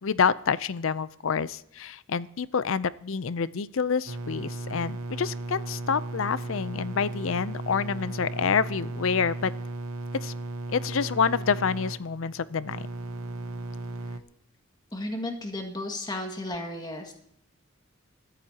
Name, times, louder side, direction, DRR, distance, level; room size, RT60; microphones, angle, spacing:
voice 1, 0.0-9.5 10.2-10.3 10.7-12.9, left 6 dB, 65° left, 17 dB, 0.5 m, -27 dB
sound 1, 4.1-14.2, right 2 dB, 80° right, 0.9 m, -36 dB
voice 2, 14.9-17.1, left 1 dB, 20° left, 3 dB, 2.0 m, -34 dB
25.0 x 14.0 x 2.9 m, 0.73 s
head